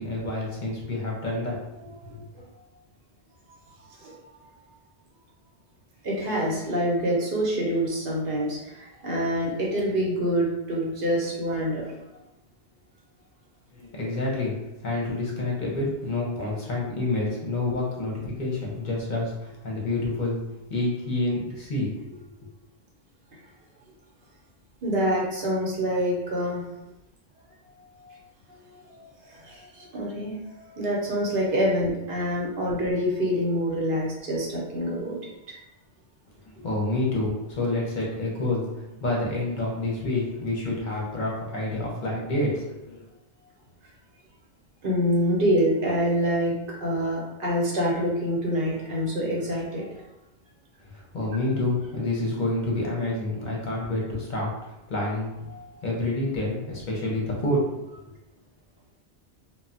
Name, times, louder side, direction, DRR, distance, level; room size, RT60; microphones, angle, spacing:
voice 1, 0.0-1.6 1.8-2.2 13.7-20.4 20.7-22.2 36.4-43.0 50.8-54.5 54.9-55.3 55.8-57.8, left 2 dB, 55° left, -3 dB, 0.7 m, -28 dB
voice 2, 6.0-12.0 24.8-26.6 28.1-28.2 28.9-35.3 44.8-49.9 55.5-55.7, equal, 65° right, -3 dB, 0.8 m, -26 dB
2.2 x 2.0 x 3.8 m, 0.93 s
omnidirectional pair, 1.0 m